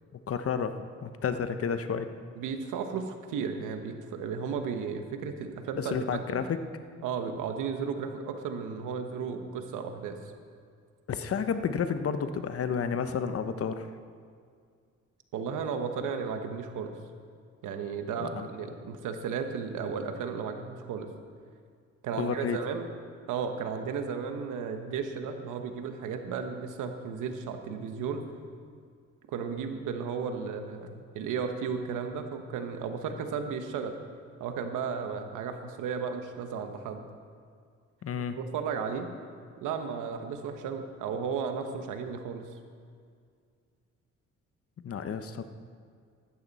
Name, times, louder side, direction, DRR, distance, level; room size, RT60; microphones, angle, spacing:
voice 1, 0.3-2.1 5.8-6.6 11.1-13.9 18.2-18.5 22.1-22.6 38.0-38.4 44.8-45.5, left 6 dB, 50° left, 10 dB, 0.9 m, -31 dB
voice 2, 2.4-6.4 7.0-10.2 15.3-17.0 17.6-21.1 22.0-22.9 23.3-28.2 29.3-33.9 34.4-37.0 38.3-39.1 39.6-42.5, right 6 dB, 90° right, 6 dB, 1.2 m, -34 dB
14.5 x 12.5 x 4.2 m, 2.2 s
cardioid pair, 90°, 30 cm